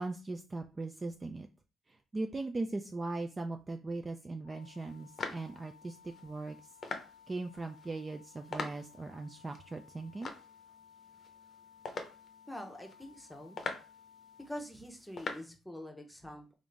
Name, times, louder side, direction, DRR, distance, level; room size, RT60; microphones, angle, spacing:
voice 1, 0.0-1.5 1.9-6.7 7.3-10.3, right 2 dB, 25° right, 5 dB, 0.3 m, -39 dB
sound 1, 4.4-14.4, left 8 dB, 55° right, 1.6 m, -59 dB
sound 2, 4.6-15.5, left 4 dB, 50° left, 0.6 m, -45 dB
voice 2, 12.5-13.6 14.4-16.5, left 1 dB, 5° left, 2 dB, 0.8 m, -45 dB
3.6 x 2.5 x 3.3 m, 0.32 s
cardioid pair, 90°, 0 cm